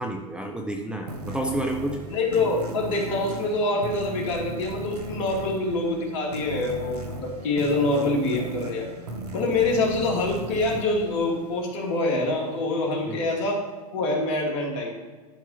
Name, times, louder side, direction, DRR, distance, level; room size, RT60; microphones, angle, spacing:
voice 1, 0.0-2.0 13.1-13.3, right 1 dB, 5° right, 2 dB, 0.9 m, -30 dB
sound 1, 1.1-12.2, right 2 dB, 85° right, 1.6 m, -36 dB
voice 2, 2.1-8.9 9.3-13.6 13.9-14.9, left 2 dB, 55° left, -1 dB, 2.7 m, -25 dB
12.0 x 4.5 x 5.8 m, 1.4 s
hypercardioid pair, 105°, 20 cm